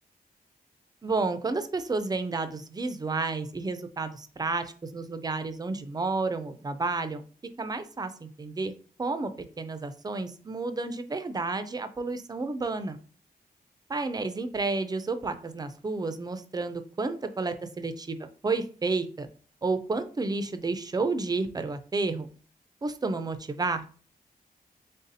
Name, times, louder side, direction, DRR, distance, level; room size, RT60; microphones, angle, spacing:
voice 1, 1.0-7.2 7.6-8.7 9.0-9.3 9.6-13.0 13.9-18.2 18.4-19.3 19.6-22.3 22.8-23.9, right 3 dB, 25° right, 9 dB, 0.4 m, -31 dB
4.0 x 3.5 x 2.6 m, 0.40 s
wide cardioid pair, 130°, 16 cm